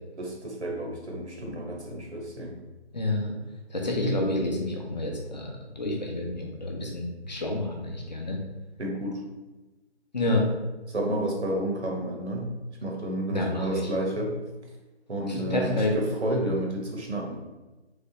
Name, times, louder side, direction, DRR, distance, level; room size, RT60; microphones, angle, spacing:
voice 1, 0.2-2.5 8.8-9.2 10.9-12.5 12.8-14.3 15.1-17.4, right 1 dB, 80° right, 0 dB, 1.2 m, -30 dB
voice 2, 2.9-3.3 3.7-8.4 10.1-10.5 13.3-13.9 15.3-16.0, left 1 dB, 40° left, 1 dB, 0.7 m, -29 dB
3.5 x 3.3 x 2.8 m, 1.1 s
figure-of-eight pair, 160°, 34 cm